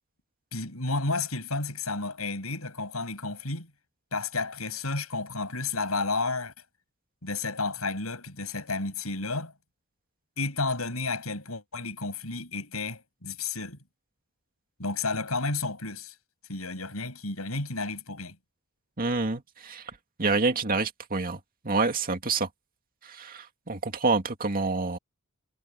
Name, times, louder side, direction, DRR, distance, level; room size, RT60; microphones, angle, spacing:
voice 1, 0.5-3.7 4.1-6.5 7.2-9.5 10.4-13.8 14.8-16.1 16.5-18.4, left 3 dB, 80° left, 7.6 m, -31 dB
voice 2, 19.0-19.8 20.2-21.4 21.6-22.5 23.0-25.0, right 3 dB, 45° right, 2.2 m, -27 dB
head